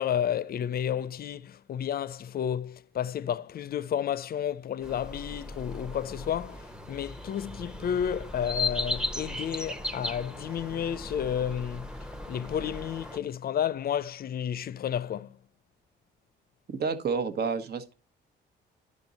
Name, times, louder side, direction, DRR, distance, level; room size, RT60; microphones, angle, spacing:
voice 1, 0.0-11.9 12.3-15.3, left 9 dB, 50° left, 0.5 m, -31 dB
sound 1, 4.8-13.2, left 2 dB, 5° right, 0.8 m, -36 dB
voice 2, 16.8-17.9, right 5 dB, 55° right, 1.1 m, -29 dB
10.5 x 5.2 x 4.0 m
cardioid pair, 90°, 20 cm